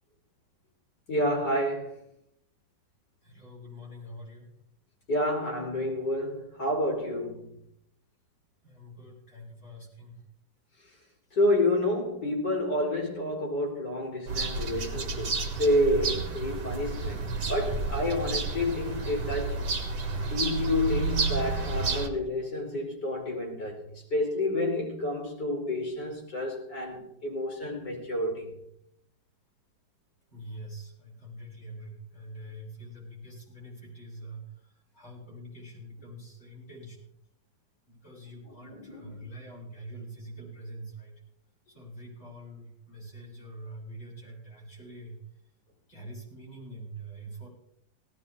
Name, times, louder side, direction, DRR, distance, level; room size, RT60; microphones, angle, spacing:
voice 1, 1.1-2.0 5.1-7.5 11.3-19.6 20.3-28.5 38.6-39.3, left 1 dB, 60° left, 4.6 m, -29 dB
voice 2, 3.2-4.5 8.6-10.2 30.3-34.7 34.9-37.0 37.9-41.2 41.7-45.2 45.9-47.5, right 1 dB, 40° left, 7.6 m, -45 dB
sound 1, 14.3-22.1, right 4 dB, 65° right, 2.3 m, -31 dB
18.0 x 15.5 x 3.6 m
omnidirectional pair, 2.0 m